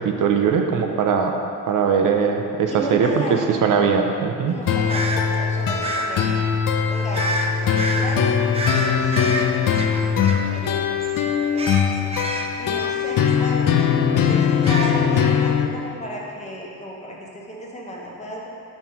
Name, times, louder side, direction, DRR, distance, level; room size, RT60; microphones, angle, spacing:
voice 1, 0.0-1.4 1.7-3.2 3.5-4.5, right 6 dB, 60° right, 3 dB, 0.6 m, -20 dB
voice 2, 2.7-3.6 4.5-6.4 6.9-9.1 9.4-9.5 10.4-10.9 11.5-12.2 12.6-18.5, equal, 20° left, -3 dB, 0.7 m, -34 dB
sound 1, 4.7-15.7, left 7 dB, 65° left, 0.5 m, -21 dB
sound 2, 4.9-5.2 5.8-6.1 7.1-7.5 7.7-8.1 8.5-10.8 11.0-11.2 11.6-13.4 13.8-13.9 14.3-15.2, right 2 dB, 20° right, 0.3 m, -29 dB
6.1 x 5.3 x 4.3 m, 2.6 s
wide cardioid pair, 175°, 35 cm